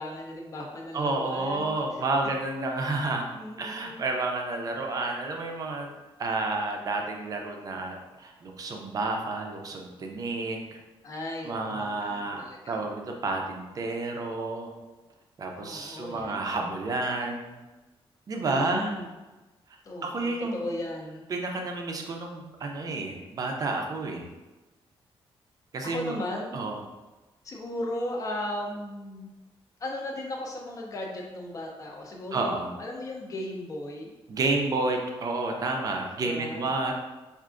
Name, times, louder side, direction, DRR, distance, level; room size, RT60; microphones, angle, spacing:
voice 1, 0.0-1.8 3.3-4.0 11.0-12.8 15.6-16.7 18.4-19.2 19.8-21.3 25.8-26.6 27.4-29.3 29.8-34.1 36.2-36.7, left 1 dB, 35° left, 0 dB, 0.5 m, -36 dB
voice 2, 0.9-3.2 3.6-5.9 6.2-10.8 11.4-14.7 15.4-17.5 18.3-18.9 20.0-20.6 21.3-24.3 25.7-26.2 26.5-26.8 32.3-32.7 34.3-36.9, right 3 dB, 40° right, 2 dB, 0.4 m, -30 dB
4.6 x 2.4 x 2.4 m, 1.1 s
wide cardioid pair, 180°, 10 cm